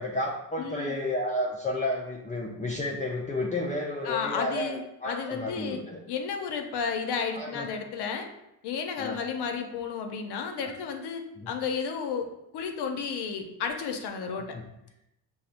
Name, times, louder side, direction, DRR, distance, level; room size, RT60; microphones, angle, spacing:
voice 1, 0.0-6.0 7.3-7.7 9.0-9.2 10.6-10.7 11.4-11.5 14.5-14.7, left 1 dB, 15° left, -3 dB, 0.5 m, -31 dB
voice 2, 0.6-1.0 4.1-5.8 6.1-8.3 8.6-12.3 12.5-14.6, left 6 dB, 60° left, 5 dB, 0.7 m, -32 dB
5.3 x 2.1 x 2.5 m, 0.85 s
supercardioid pair, 65°, 45 cm